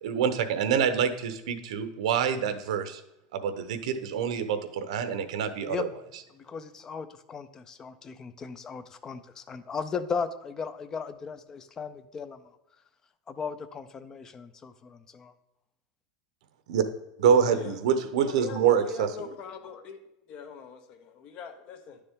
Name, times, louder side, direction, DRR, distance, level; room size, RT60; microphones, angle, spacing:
voice 1, 0.0-3.0 3.3-5.9 16.7-16.8 17.2-19.1, right 7 dB, 75° right, 10 dB, 0.9 m, -26 dB
voice 2, 6.3-12.4 13.3-15.3, left 5 dB, 15° left, 12 dB, 0.4 m, -36 dB
voice 3, 18.2-20.0 20.3-22.0, left 6 dB, 30° left, 7 dB, 0.8 m, -41 dB
10.5 x 6.7 x 3.6 m, 0.92 s
supercardioid pair, 175°, 4 cm